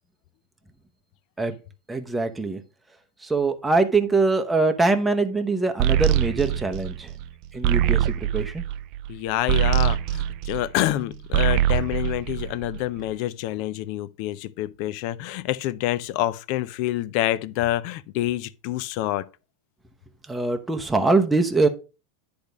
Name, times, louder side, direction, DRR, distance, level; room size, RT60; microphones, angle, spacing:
voice 1, 1.9-2.6 3.2-7.1 7.5-8.6 20.3-21.7, right 3 dB, 5° right, 0.8 m, -23 dB
sound 1, 5.8-11.0 11.2-13.0, right 11 dB, 50° right, 0.4 m, -23 dB
voice 2, 9.1-19.3, left 14 dB, 55° left, 0.5 m, -27 dB
10.0 x 3.5 x 5.2 m
supercardioid pair, 140°, 0 cm